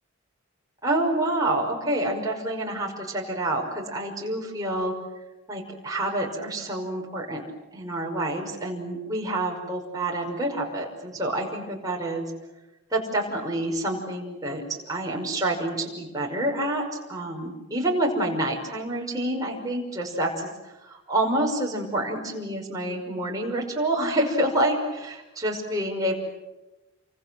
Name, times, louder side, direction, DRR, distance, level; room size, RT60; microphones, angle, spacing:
voice 1, 0.8-5.0 5.5-7.5 7.7-12.3 12.9-26.2, right 1 dB, 15° right, -1 dB, 5.6 m, -28 dB
29.5 x 25.0 x 7.9 m, 1.0 s
head